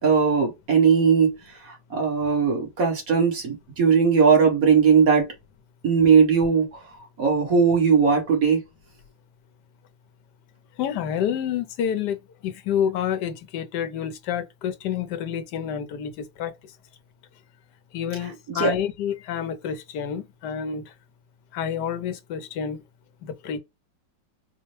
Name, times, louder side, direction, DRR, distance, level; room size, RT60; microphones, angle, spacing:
voice 1, 0.0-1.3 1.6-5.2 5.8-6.8 7.2-8.6 18.5-18.7, right 6 dB, 50° right, 1.7 m, -19 dB
voice 2, 10.8-12.2 12.4-16.5 17.9-20.9 21.5-22.8 23.2-23.6, left 8 dB, 70° left, 1.2 m, -28 dB
4.3 x 2.1 x 3.2 m
omnidirectional pair, 2.0 m